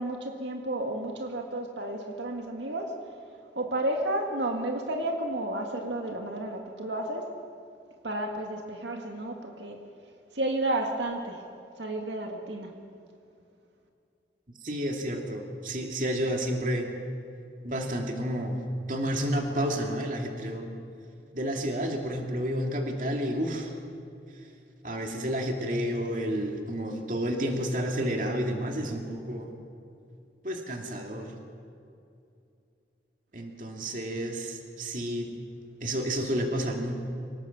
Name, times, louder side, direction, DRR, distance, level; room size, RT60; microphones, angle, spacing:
voice 1, 0.0-3.0 3.6-7.3 8.0-9.8 10.3-11.4 11.8-12.7, right 1 dB, 85° right, 3 dB, 2.0 m, -32 dB
voice 2, 14.6-16.9 17.6-18.6 18.9-20.7 21.3-23.7 24.8-29.5 30.4-31.3 33.3-35.3 35.8-36.9, equal, 45° right, 2 dB, 2.5 m, -30 dB
25.0 x 18.5 x 7.3 m, 2.5 s
head